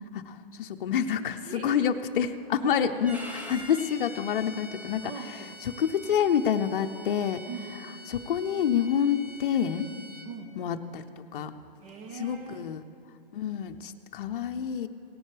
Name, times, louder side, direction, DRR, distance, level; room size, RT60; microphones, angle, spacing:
voice 1, 0.1-5.1 5.6-7.4 8.1-9.9 10.6-11.0 11.3-11.5 12.1-12.8 13.3-14.9, left 8 dB, 65° left, 6 dB, 0.6 m, -28 dB
voice 2, 1.4-1.9 2.6-3.2 5.0-5.6 7.5-7.7 10.2-10.6 11.8-12.7, right 5 dB, 40° right, 6 dB, 1.0 m, -41 dB
Bowed string instrument, 3.0-10.3, equal, 5° right, 0.5 m, -45 dB
17.5 x 10.5 x 3.3 m, 2.9 s
hypercardioid pair, 140°, 29 cm